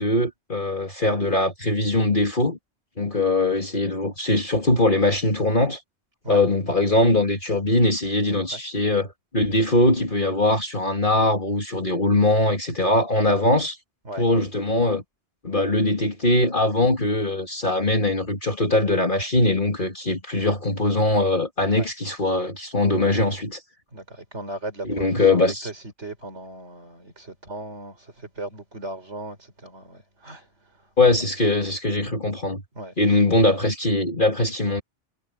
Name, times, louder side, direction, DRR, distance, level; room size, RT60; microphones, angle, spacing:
voice 1, 0.0-2.6 3.0-5.8 6.3-13.8 14.2-15.0 15.4-23.6 24.8-25.7 31.0-32.6 33.0-34.8, left 2 dB, 45° left, 2.9 m, -21 dB
voice 2, 23.9-30.5 32.7-33.2, right 1 dB, 85° right, 5.0 m, -37 dB
omnidirectional pair, 1.1 m